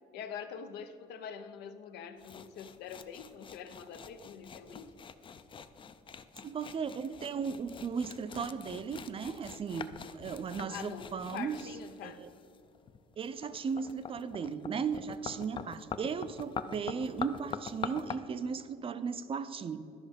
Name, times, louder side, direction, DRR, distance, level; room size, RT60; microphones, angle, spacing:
voice 1, 0.1-4.9 10.6-12.2, left 7 dB, 80° left, 9 dB, 0.6 m, -45 dB
sound 1, 2.2-18.2, left 6 dB, 30° left, 0.4 m, -45 dB
voice 2, 6.4-11.6 12.0-12.3 13.2-19.8, right 6 dB, 35° right, 12 dB, 0.4 m, -36 dB
12.0 x 5.2 x 5.1 m, 2.6 s
cardioid pair, 110°, 17 cm